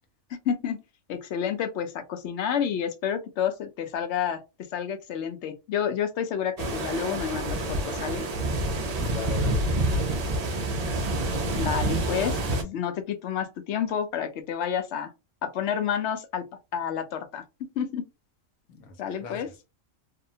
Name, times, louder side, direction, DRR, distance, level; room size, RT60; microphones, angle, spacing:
voice 1, 0.5-0.8 1.1-4.4 4.7-8.3 11.5-15.1 15.4-16.5 16.7-18.1 19.0-19.5, left 8 dB, 65° left, 0.8 m, -29 dB
sound 1, 6.6-12.6, right 1 dB, 70° right, 0.3 m, -27 dB
voice 2, 9.0-10.5 18.7-19.6, left 4 dB, 80° left, 1.1 m, -40 dB
2.7 x 2.1 x 2.6 m
omnidirectional pair, 1.4 m